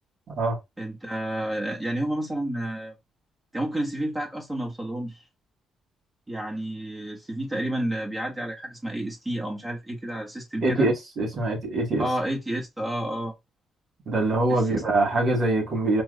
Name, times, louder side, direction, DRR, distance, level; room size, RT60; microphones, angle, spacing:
voice 1, 0.8-2.9 3.5-5.2 6.3-10.9 12.0-13.3 14.5-14.6, right 1 dB, 15° right, 1.4 m, -30 dB
voice 2, 10.6-12.1 14.1-16.0, right 2 dB, 55° right, 1.9 m, -24 dB
4.6 x 2.3 x 2.5 m
supercardioid pair, 55°, 0 cm